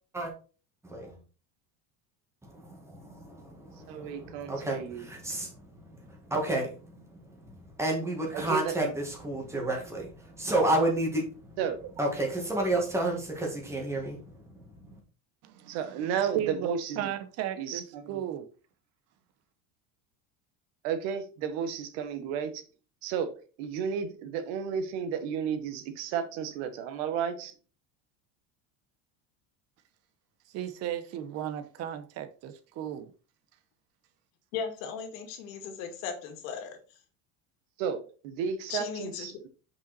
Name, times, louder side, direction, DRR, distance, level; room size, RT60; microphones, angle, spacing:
voice 1, 0.8-1.2 2.4-11.6 12.0-15.0, right 1 dB, 5° right, 1.8 m, -31 dB
voice 2, 3.9-5.1 8.3-8.9 11.6-11.9 15.7-17.1 17.6-18.2 20.8-22.6 23.0-27.5 37.8-38.0 38.2-39.5, right 7 dB, 70° right, 1.4 m, -33 dB
voice 3, 15.4-15.8 16.3-18.5 30.5-33.1, right 11 dB, 40° right, 0.9 m, -35 dB
voice 4, 34.5-36.8 38.7-39.3, left 6 dB, 80° left, 2.0 m, -37 dB
5.5 x 5.4 x 4.2 m
cardioid pair, 165°, 38 cm